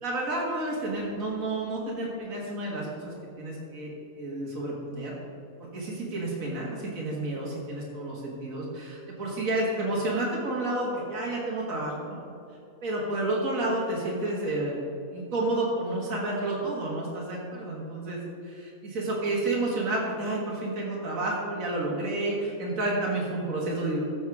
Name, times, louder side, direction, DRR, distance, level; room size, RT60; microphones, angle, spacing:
voice 1, 0.0-5.1 5.7-12.2 12.8-14.8 15.1-24.0, right 2 dB, 70° right, -4 dB, 2.2 m, -30 dB
14.0 x 7.8 x 4.8 m, 2.8 s
omnidirectional pair, 1.5 m